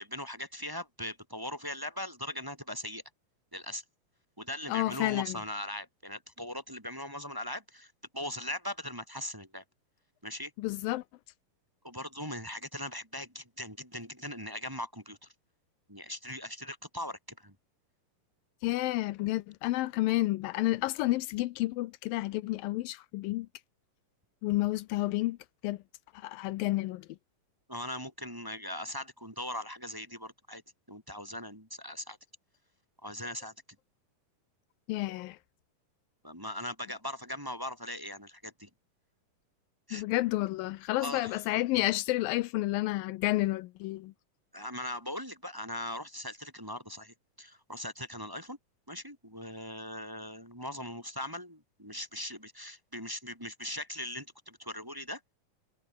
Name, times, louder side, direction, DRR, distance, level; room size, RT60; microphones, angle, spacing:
voice 1, 0.0-3.0 3.5-3.8 4.4-9.6 10.2-10.5 11.8-15.3 15.9-17.5 27.7-30.6 30.9-32.2 33.0-33.5 36.2-38.7 39.9-40.0 41.0-41.4 44.5-48.6 48.9-55.3, left 1 dB, 5° right, 3.6 m, -40 dB
voice 2, 4.7-5.4 10.6-11.0 18.6-23.5 24.4-25.4 25.6-25.8 26.1-27.1 34.9-35.4 39.9-44.1, left 18 dB, 80° left, 2.4 m, -30 dB
omnidirectional pair, 4.1 m